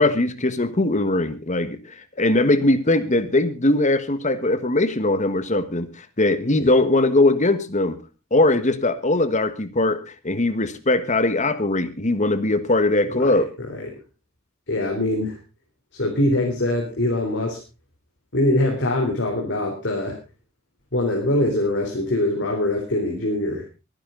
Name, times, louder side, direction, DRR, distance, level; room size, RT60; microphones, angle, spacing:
voice 1, 0.0-1.8 2.2-8.0 8.3-13.5, left 2 dB, 35° left, 12 dB, 1.5 m, -20 dB
voice 2, 13.6-13.9 14.7-15.4 15.9-17.6 18.3-20.2 20.9-23.6, left 1 dB, 55° left, 0 dB, 3.6 m, -23 dB
23.0 x 10.5 x 3.8 m, 0.30 s
head